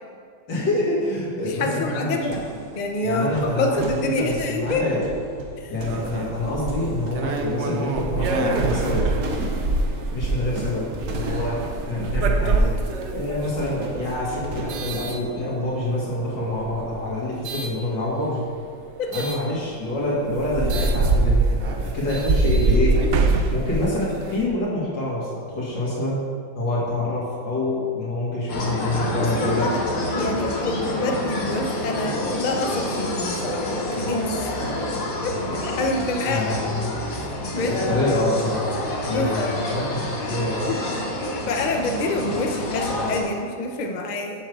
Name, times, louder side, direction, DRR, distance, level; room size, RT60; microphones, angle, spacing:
voice 1, 0.5-2.2 3.0-3.8 4.2-5.1 5.7-9.1 10.1-10.8 11.1-11.6 11.8-12.7 13.1-18.4 19.1-23.0 23.5-26.2 26.5-29.7 36.2-36.9 37.5-40.7, left 1 dB, 85° left, -6 dB, 2.8 m, -26 dB
voice 2, 1.4-2.4 2.7-4.9 5.6-5.7 19.0-19.3 29.2-29.8 30.1-34.5 35.2-35.4 35.8-36.4 37.1-37.3 37.5-37.9 39.1-40.0 40.7-40.8 41.5-44.4, left 2 dB, 70° left, 3 dB, 0.4 m, -27 dB
sound 1, 2.2-15.2, right 1 dB, 60° right, 1.3 m, -36 dB
sound 2, 5.8-15.9 16.5-17.7 19.1-19.4 19.9-20.0 20.3-24.5, right 3 dB, 90° right, 0.6 m, -24 dB
sound 3, 28.5-43.2, left 1 dB, 55° left, 1.4 m, -28 dB
7.1 x 4.6 x 6.6 m, 2.3 s
omnidirectional pair, 1.9 m